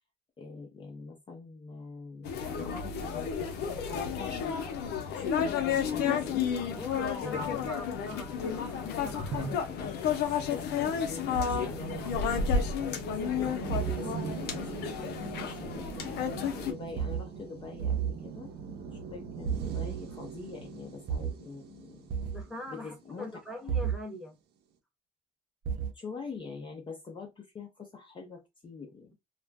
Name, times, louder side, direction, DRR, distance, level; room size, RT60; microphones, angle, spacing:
voice 1, 0.4-4.7 5.1-6.5 7.2-7.7 9.4-9.9 10.5-12.4 13.1-14.7 15.0-18.5 18.9-22.1 22.7-23.3 25.9-29.1, left 4 dB, 30° left, 0.6 m, -44 dB
sound 1, 2.2-16.7, left 7 dB, 75° left, 0.7 m, -32 dB
voice 2, 6.6-9.5 18.9-19.1 22.3-24.4, left 1 dB, 5° right, 1.0 m, -43 dB
sound 2, 8.7-23.7, right 6 dB, 80° right, 0.8 m, -44 dB
sound 3, 9.3-9.6 11.3-11.6 13.7-14.0 17.0-17.2 17.8-18.1 19.4-20.0 21.1-21.3 22.1-22.4 23.7-23.9 25.6-25.9, right 8 dB, 55° right, 0.7 m, -31 dB
2.4 x 2.1 x 3.3 m
cardioid pair, 110°, 17 cm